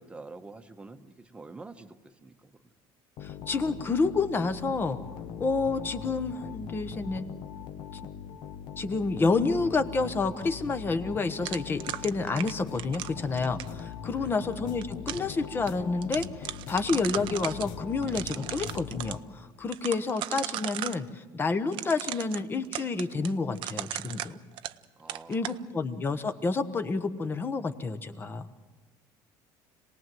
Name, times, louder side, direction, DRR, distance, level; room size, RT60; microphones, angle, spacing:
voice 1, 0.0-2.7 3.6-3.8 14.1-14.4 25.0-25.5, right 3 dB, 10° right, 8 dB, 1.1 m, -47 dB
sound 1, 3.2-19.6, left 8 dB, 55° left, 1.2 m, -41 dB
voice 2, 3.2-5.0 5.4-7.3 7.9-8.0 8.8-24.4 25.3-28.5, left 4 dB, 20° left, 11 dB, 1.1 m, -29 dB
sound 2, 11.5-13.8 14.6-15.3 15.7-15.8 16.0-17.7 18.0-19.2 19.7-21.0 21.7-24.8 25.1-25.6, right 14 dB, 60° right, 0.7 m, -36 dB
27.0 x 19.0 x 7.8 m, 1.3 s
cardioid pair, 150°, 10 cm